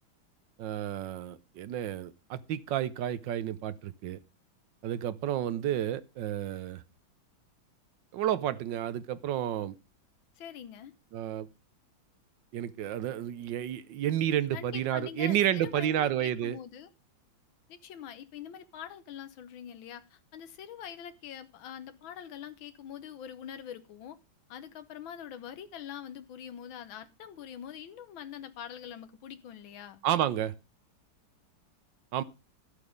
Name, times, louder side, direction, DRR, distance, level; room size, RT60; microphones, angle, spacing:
voice 1, 0.6-4.2 4.8-6.8 8.1-9.7 11.1-11.5 12.5-16.6 30.0-30.5 32.1-32.2, right 11 dB, 75° right, 1.4 m, -31 dB
voice 2, 10.4-10.9 14.5-16.9 17.7-24.2 24.5-30.0, left 9 dB, 85° left, 1.8 m, -44 dB
12.0 x 8.4 x 5.1 m
omnidirectional pair, 2.1 m